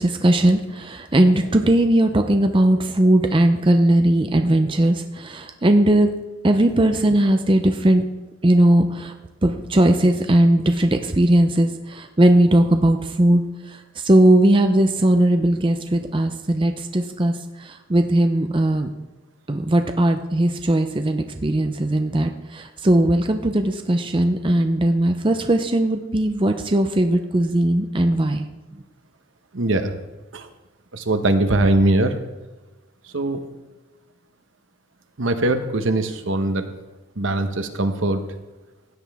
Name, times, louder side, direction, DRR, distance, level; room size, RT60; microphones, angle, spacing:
voice 1, 0.0-6.1 6.4-8.0 8.4-9.1 9.4-13.4 13.7-18.9 19.5-28.5, right 1 dB, 25° right, 6 dB, 0.5 m, -18 dB
voice 2, 29.5-29.9 30.3-30.5 30.9-32.2 33.1-33.4 35.2-36.7 37.2-38.2, right 2 dB, 70° right, 8 dB, 1.0 m, -21 dB
16.0 x 9.5 x 3.5 m, 1.1 s
head